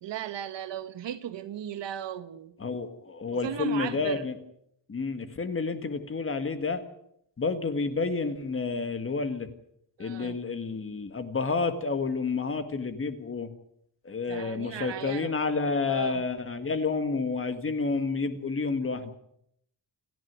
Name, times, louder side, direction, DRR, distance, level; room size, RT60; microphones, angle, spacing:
voice 1, 0.0-2.5 3.3-4.3 10.0-10.4 14.3-15.4 15.8-16.2, right 10 dB, 70° right, 1.6 m, -37 dB
voice 2, 2.6-4.3 4.9-6.8 7.4-9.5 10.0-13.5 14.1-19.1, left 4 dB, 30° left, 1.9 m, -30 dB
28.5 x 10.5 x 9.5 m
wide cardioid pair, 160°, 44 cm